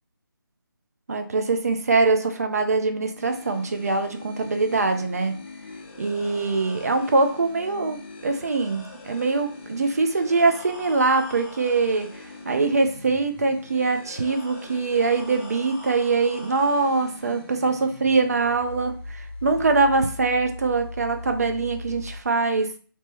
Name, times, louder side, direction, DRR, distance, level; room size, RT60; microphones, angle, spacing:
voice 1, 1.1-5.4 6.0-8.0 8.2-12.1 12.5-22.8, right 3 dB, 40° right, 6 dB, 0.5 m, -23 dB
sound 1, 3.2-22.2, left 2 dB, 25° left, 0.7 m, -41 dB
3.1 x 2.9 x 3.0 m, 0.42 s
figure-of-eight pair, 155°, 12 cm